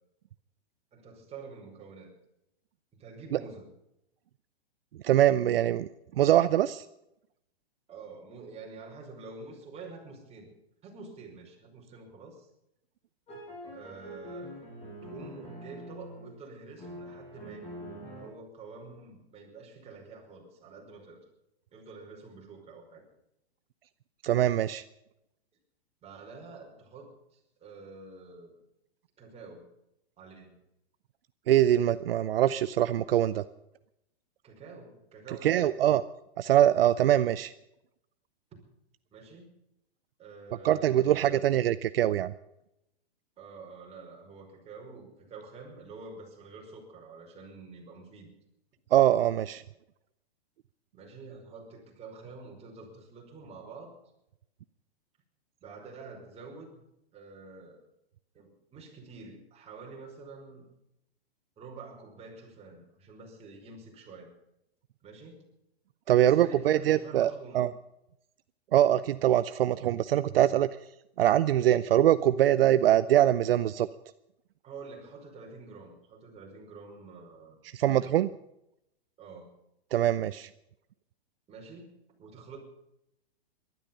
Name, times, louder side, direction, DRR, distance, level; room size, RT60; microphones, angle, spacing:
voice 1, 0.9-2.1 3.0-3.7 7.9-10.5 10.8-12.5 13.7-14.6 15.0-21.2 21.7-23.1 26.0-28.5 29.2-29.7 30.2-30.6 34.4-35.7 39.1-39.5 40.2-41.3 43.4-48.3 50.9-53.9 55.6-56.8 57.1-57.8 58.3-60.7 61.6-64.3 65.0-65.4 66.2-67.7 74.6-78.1 79.2-79.5 81.5-81.9 82.2-82.6, right 4 dB, 20° right, 0 dB, 5.2 m, -47 dB
voice 2, 5.0-5.9 6.2-6.8 24.2-24.8 31.5-33.4 35.4-36.0 36.4-37.5 40.6-42.3 48.9-49.6 66.1-67.3 67.5-67.7 68.7-70.7 71.2-73.9 77.7-78.3 79.9-80.5, right 12 dB, 65° right, 14 dB, 0.7 m, -23 dB
sound 1, 13.3-16.4 16.8-18.3, equal, 20° left, 6.8 m, -44 dB
19.0 x 12.5 x 5.4 m, 0.84 s
hypercardioid pair, 130°, 31 cm